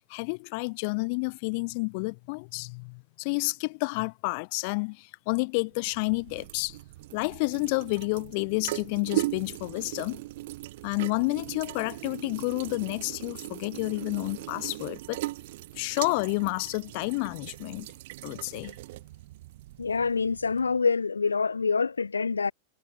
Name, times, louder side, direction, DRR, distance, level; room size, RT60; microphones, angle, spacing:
voice 1, 0.1-6.8 7.1-10.2 10.8-15.2 15.8-17.9 18.2-18.8, left 31 dB, 45° left, 1.2 m, -30 dB
sound 1, 5.8-20.8, right 17 dB, 55° right, 7.2 m, -39 dB
voice 2, 19.8-22.5, left 5 dB, 75° left, 1.0 m, -26 dB
figure-of-eight pair, 90°, 0 cm